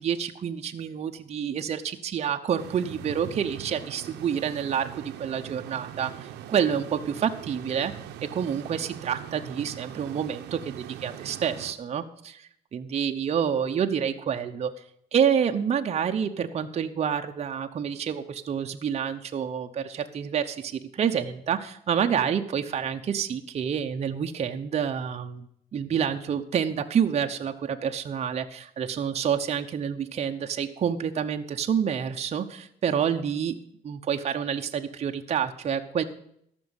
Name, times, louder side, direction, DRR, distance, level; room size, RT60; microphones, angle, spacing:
voice 1, 0.0-7.9 8.2-12.0 12.7-14.7 15.1-25.5 25.7-33.6 33.8-36.0, right 8 dB, 40° right, 5 dB, 0.8 m, -28 dB
sound 1, 2.6-11.7, right 11 dB, 85° right, 0.9 m, -41 dB
13.5 x 6.2 x 8.0 m, 0.71 s
cardioid pair, 110°, 17 cm